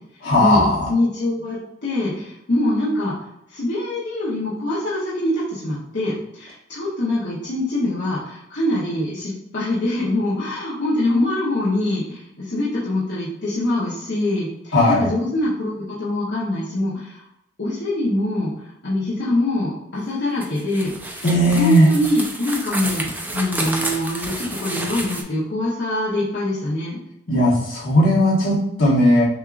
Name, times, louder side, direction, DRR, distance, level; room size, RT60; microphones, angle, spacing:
voice 1, 0.2-0.9 14.7-15.1 21.2-21.9 27.3-29.2, equal, 80° left, -6 dB, 1.5 m, -17 dB
voice 2, 0.9-1.6 1.8-3.2 3.5-17.3 17.6-18.5 18.8-21.2 21.5-27.0, left 1 dB, 60° left, -8 dB, 1.0 m, -24 dB
sound 1, 20.4-25.2, right 1 dB, 10° right, 0.5 m, -30 dB
6.2 x 2.5 x 2.5 m, 0.83 s
head